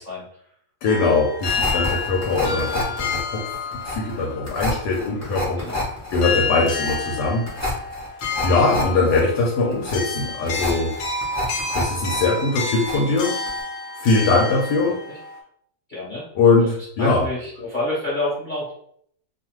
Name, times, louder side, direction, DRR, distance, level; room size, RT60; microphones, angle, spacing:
voice 1, 0.8-3.4 3.8-5.6 6.1-7.4 8.4-10.9 11.7-13.3 14.0-14.9 16.3-17.2, left 3 dB, 85° left, -1 dB, 1.2 m, -21 dB
sound 1, 0.9-5.9 6.2-15.4, left 4 dB, 65° left, 0.9 m, -30 dB
sound 2, 1.4-12.2 12.5-13.2 13.5-13.6, left 1 dB, 20° left, 0.4 m, -29 dB
voice 2, 15.9-16.2 16.6-16.7 17.0-18.7, left 2 dB, 35° left, -8 dB, 0.9 m, -28 dB
2.6 x 2.4 x 3.0 m, 0.67 s
omnidirectional pair, 1.8 m